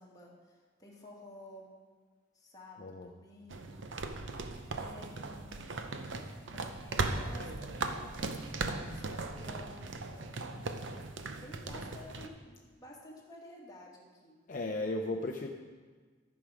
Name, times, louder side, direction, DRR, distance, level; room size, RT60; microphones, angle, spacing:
voice 1, 0.0-1.7 2.3-3.9 4.8-6.1 6.5-10.3 11.4-14.4, left 1 dB, 20° left, -3 dB, 1.9 m, -52 dB
voice 2, 2.8-3.1 14.5-15.5, left 2 dB, 45° left, 1 dB, 0.6 m, -35 dB
sound 1, 3.5-12.3, right 3 dB, 70° right, 0.7 m, -38 dB
13.0 x 6.3 x 5.0 m, 1.5 s
head